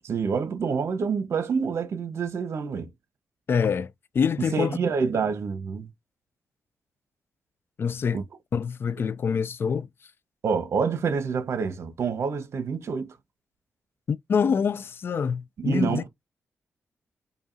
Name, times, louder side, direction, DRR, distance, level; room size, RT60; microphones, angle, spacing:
voice 1, 0.0-2.9 4.5-5.9 8.1-8.2 10.4-13.1 15.6-16.1, right 5 dB, 70° right, 1.1 m, -27 dB
voice 2, 3.5-4.8 7.8-8.2 8.5-9.9 14.1-16.0, left 6 dB, 50° left, 0.4 m, -26 dB
4.8 x 2.7 x 2.7 m
cardioid pair, 70°, 5 cm